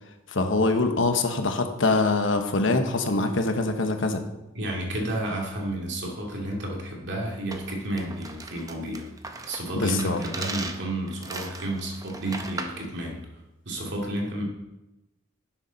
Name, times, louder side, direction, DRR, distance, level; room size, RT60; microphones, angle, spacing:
voice 1, 0.3-4.2 9.8-10.2, left 3 dB, 70° left, 6 dB, 1.1 m, -24 dB
voice 2, 4.5-9.1 9.4-13.2 13.6-14.4, right 1 dB, 60° right, -1 dB, 2.4 m, -31 dB
sound 1, 7.5-12.9, right 3 dB, 20° right, 0.8 m, -38 dB
11.5 x 7.2 x 4.1 m, 0.99 s
head